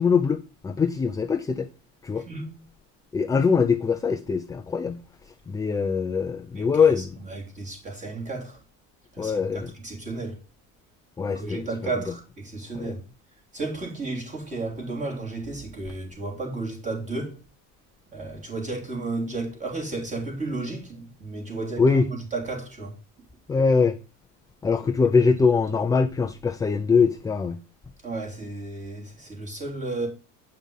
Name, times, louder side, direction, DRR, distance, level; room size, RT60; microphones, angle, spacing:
voice 1, 0.0-1.7 2.0-2.2 3.1-5.0 5.5-7.1 9.2-9.7 11.2-11.6 12.7-12.9 21.8-22.1 23.5-24.0 24.6-27.6, left 5 dB, 10° left, 0.4 m, -22 dB
voice 2, 2.2-2.6 6.5-8.6 9.1-10.4 11.3-13.0 13.5-17.4 18.1-23.0 28.0-30.1, right 3 dB, 20° right, 3.4 m, -33 dB
8.8 x 5.6 x 5.4 m
cardioid pair, 135°, 35 cm